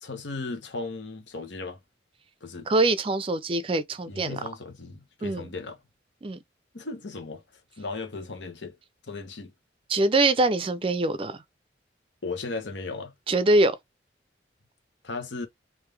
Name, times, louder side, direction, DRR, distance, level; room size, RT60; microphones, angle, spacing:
voice 1, 0.0-1.8 2.4-2.7 4.1-5.8 6.7-7.4 7.8-8.8 9.1-9.5 12.2-13.1 15.0-15.5, left 3 dB, 85° left, 1.1 m, -36 dB
voice 2, 2.7-4.4 5.2-5.5 6.2-6.4 9.9-11.4 13.3-13.8, right 2 dB, 30° right, 0.4 m, -23 dB
3.7 x 2.6 x 3.3 m
head